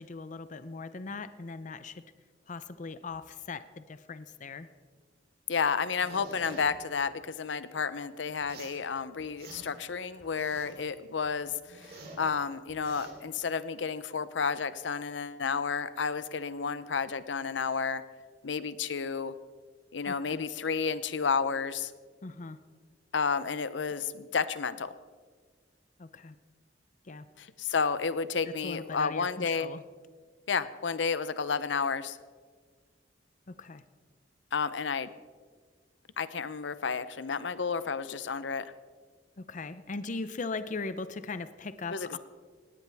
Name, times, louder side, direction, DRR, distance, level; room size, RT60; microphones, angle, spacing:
voice 1, 0.0-2.0 2.5-4.7 20.1-20.5 22.2-22.6 26.0-26.4 27.0-27.3 28.4-29.8 33.5-33.8 39.4-42.2, left 3 dB, 45° left, 13 dB, 0.6 m, -39 dB
voice 2, 5.5-11.5 11.8-18.0 18.4-19.3 19.9-21.9 23.1-24.9 27.4-29.7 30.5-32.2 34.5-35.1 36.2-38.7 41.9-42.2, left 5 dB, 90° left, 14 dB, 0.7 m, -31 dB
sound 1, 6.0-6.7 8.4-8.8 9.2-9.9 10.2-10.9 11.2-12.3 12.7-13.1, right 2 dB, 60° right, 3.5 m, -48 dB
18.5 x 18.0 x 3.5 m, 1.5 s
head